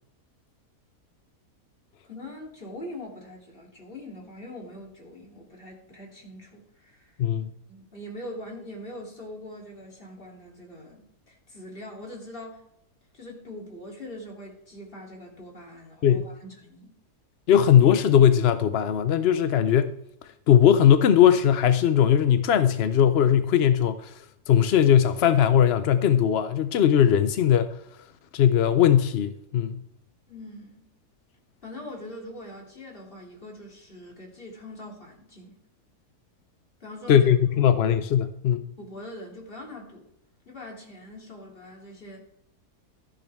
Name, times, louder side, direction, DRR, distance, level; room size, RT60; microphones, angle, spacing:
voice 1, 2.0-7.1 7.7-12.6 13.1-16.9 30.3-30.9 31.6-35.6 36.8-37.3 38.8-40.1 40.4-42.2, left 1 dB, 35° left, 3.4 m, -42 dB
voice 2, 7.2-7.5 16.0-16.2 17.5-19.9 20.5-24.2 24.5-27.7 28.3-29.8 37.1-38.7, left 9 dB, 60° left, 0.6 m, -19 dB
14.0 x 10.5 x 3.5 m
omnidirectional pair, 1.7 m